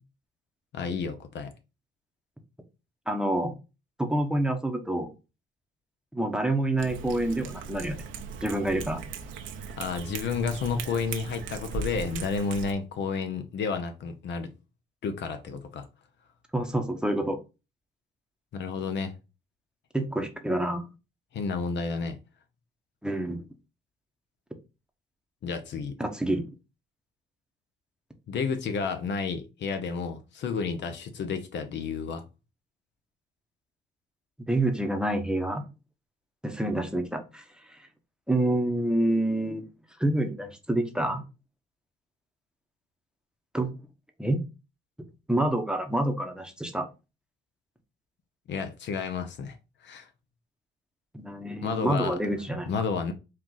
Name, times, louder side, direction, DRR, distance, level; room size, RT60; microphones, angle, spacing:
voice 1, 0.7-1.5 9.8-14.5 15.0-15.9 18.5-19.1 21.3-22.2 25.4-26.0 28.3-32.2 48.5-49.6 49.8-50.1 51.6-52.2 52.7-53.1, left 5 dB, 65° left, 0.7 m, -31 dB
voice 2, 3.1-3.5 4.0-5.1 6.1-8.0 8.4-9.0 16.5-17.4 19.9-20.9 23.0-23.4 26.0-26.5 34.5-35.6 36.4-37.4 37.7-37.8 38.3-39.6 40.0-41.2 43.5-43.7 44.2-44.4 45.3-46.9 51.1-52.7, right 1 dB, 5° right, 0.8 m, -27 dB
Cat, 6.8-12.7, right 6 dB, 75° right, 0.7 m, -38 dB
4.4 x 2.4 x 3.9 m
cardioid pair, 90°, 20 cm